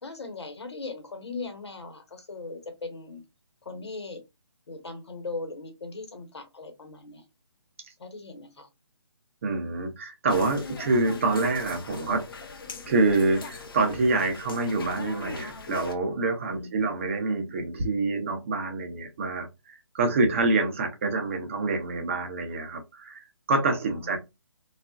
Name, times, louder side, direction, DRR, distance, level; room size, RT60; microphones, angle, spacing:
voice 1, 0.0-3.2 3.6-4.2 4.7-7.2 8.0-8.7 16.4-16.7 20.2-20.4 23.9-24.2, left 3 dB, 70° left, 1.1 m, -39 dB
voice 2, 9.4-12.3 12.9-24.2, right 3 dB, 30° right, 0.6 m, -26 dB
sound 1, 10.3-15.9, left 4 dB, 55° left, 0.6 m, -40 dB
3.5 x 2.4 x 2.3 m
hypercardioid pair, 160°, 14 cm